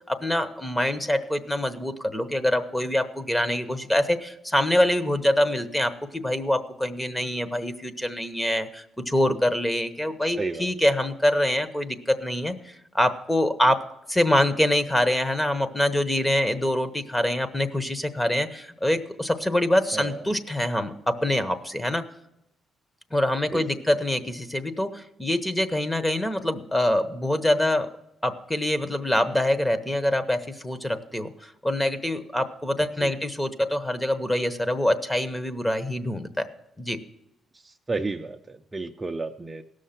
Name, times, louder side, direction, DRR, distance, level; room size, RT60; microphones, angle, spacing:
voice 1, 0.0-13.8 14.1-22.0 23.1-27.9 28.2-36.5 36.8-37.0, left 1 dB, 10° left, 11 dB, 1.0 m, -25 dB
voice 2, 10.2-10.7 19.9-20.3 23.5-23.8 33.0-33.1 37.5-39.6, right 3 dB, 20° right, 4 dB, 0.5 m, -32 dB
17.0 x 6.5 x 5.8 m, 0.86 s
cardioid pair, 90°, 0 cm